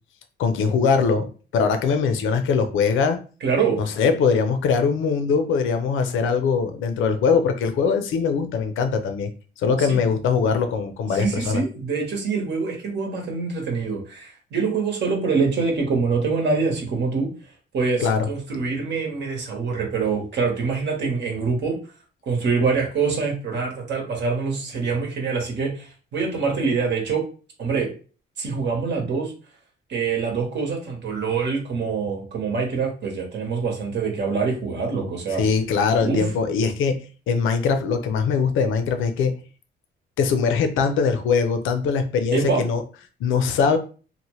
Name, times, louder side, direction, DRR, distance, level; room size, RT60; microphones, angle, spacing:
voice 1, 0.4-1.3 1.5-3.2 3.8-9.3 9.6-11.6 18.0-18.3 35.3-39.4 40.2-42.8 43.2-43.8, left 5 dB, 85° left, 8 dB, 0.5 m, -21 dB
voice 2, 3.4-3.8 9.8-10.0 11.1-17.3 17.7-21.8 22.2-27.2 27.6-27.9 28.4-29.3 29.9-35.4 36.0-36.3 42.3-42.6, right 5 dB, 65° right, 1 dB, 1.1 m, -25 dB
2.8 x 2.1 x 3.0 m, 0.37 s
cardioid pair, 90°, 20 cm